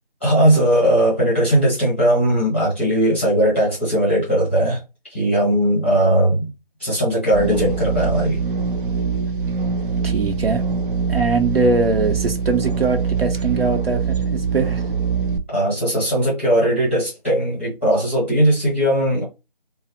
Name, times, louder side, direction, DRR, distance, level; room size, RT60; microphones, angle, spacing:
voice 1, 0.2-4.8 5.1-6.5 6.8-8.4 15.5-19.2, right 1 dB, 10° left, 0.7 m, -18 dB
sound 1, 7.3-15.4, right 5 dB, 60° right, 0.5 m, -23 dB
voice 2, 10.0-10.6 11.1-14.8, right 3 dB, 85° right, 0.8 m, -21 dB
3.0 x 2.0 x 2.8 m
figure-of-eight pair, 170°, 29 cm